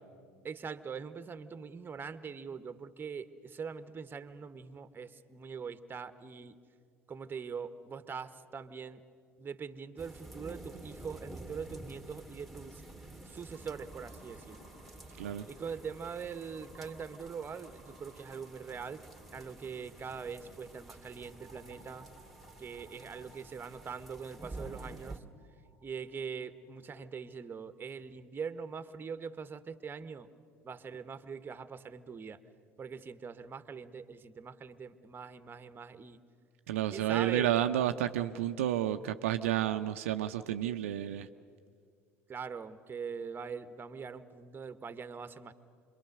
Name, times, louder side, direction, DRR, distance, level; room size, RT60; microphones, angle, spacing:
voice 1, 0.4-6.5 7.1-9.0 9.4-12.8 13.2-14.6 15.5-19.0 19.3-22.1 22.6-25.2 25.8-30.3 30.6-32.4 32.8-36.2 36.9-37.6 42.3-45.5, right 6 dB, 30° right, 11 dB, 1.2 m, -42 dB
sound 1, 10.0-25.2, right 2 dB, ahead, 2.4 m, -50 dB
sound 2, 13.5-27.5, right 1 dB, 70° left, 4.2 m, -60 dB
voice 2, 36.7-41.3, right 11 dB, 75° right, 8 dB, 0.6 m, -31 dB
27.0 x 22.5 x 6.6 m, 2.2 s
hypercardioid pair, 65°, 7 cm